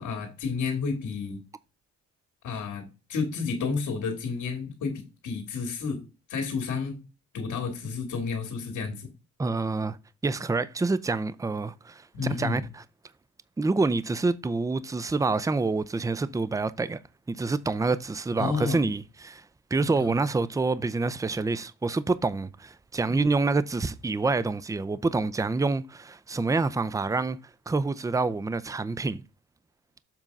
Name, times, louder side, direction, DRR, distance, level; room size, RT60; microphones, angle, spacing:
voice 1, 0.0-1.4 2.4-6.0 6.3-7.0 7.3-9.1 12.1-12.6 18.4-18.8 19.8-20.2 23.1-23.2, left 5 dB, 75° left, 2.3 m, -31 dB
voice 2, 9.4-10.0 10.2-12.8 13.6-17.0 17.3-19.4 19.7-27.4 27.7-29.2, right 3 dB, 10° right, 0.5 m, -27 dB
7.4 x 3.7 x 5.3 m
cardioid pair, 90°, 30 cm